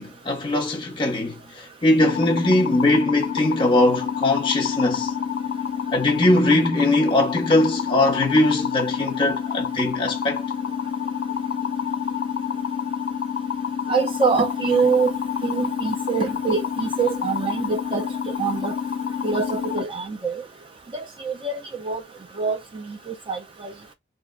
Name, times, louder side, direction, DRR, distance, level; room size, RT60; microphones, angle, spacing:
voice 1, 0.0-5.1 5.9-10.4, left 1 dB, 25° left, 0.8 m, -21 dB
sound 1, 2.0-19.8, left 7 dB, 90° left, 0.4 m, -28 dB
voice 2, 13.9-15.1 15.4-18.7 19.2-20.4 20.9-22.0 22.4-23.7, right 5 dB, 25° right, 0.4 m, -25 dB
2.5 x 2.1 x 3.7 m
head